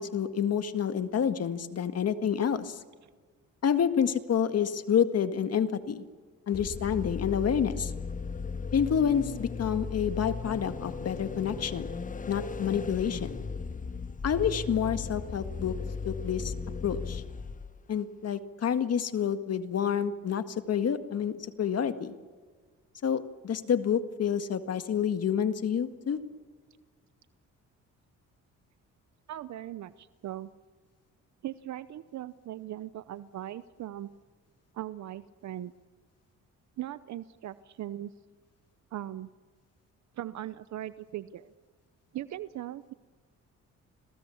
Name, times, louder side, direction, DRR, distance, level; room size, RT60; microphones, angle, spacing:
voice 1, 0.0-2.8 3.6-6.0 6.5-7.9 8.7-11.9 12.3-13.4 14.2-15.7 16.1-16.5 16.8-17.2 17.9-22.2 23.0-26.2, left 8 dB, 55° left, 9 dB, 1.9 m, -28 dB
sound 1, 6.5-17.8, left 5 dB, 25° left, 1.2 m, -36 dB
voice 2, 29.3-30.5 31.4-34.1 34.7-35.7 36.8-38.1 38.9-39.3 40.2-41.5 42.1-42.9, right 13 dB, 65° right, 14 dB, 0.8 m, -39 dB
30.0 x 22.5 x 7.2 m, 1.5 s
cardioid pair, 90°, 30 cm